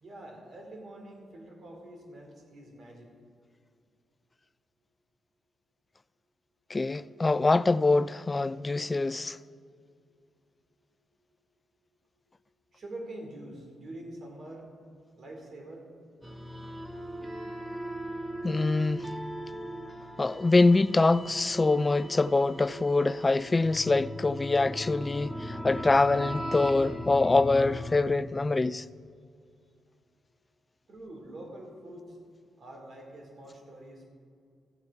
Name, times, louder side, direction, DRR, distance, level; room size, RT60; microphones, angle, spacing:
voice 1, 0.0-3.1 12.7-14.7 15.2-15.9 30.9-32.2 32.6-34.1, right 1 dB, 55° right, 2.7 m, -45 dB
voice 2, 6.7-9.4 18.4-19.1 20.2-28.8, left 3 dB, 25° left, 0.3 m, -24 dB
sound 1, 16.2-28.0, equal, 10° right, 1.3 m, -38 dB
14.5 x 8.1 x 4.8 m
cardioid pair, 70°, 0 cm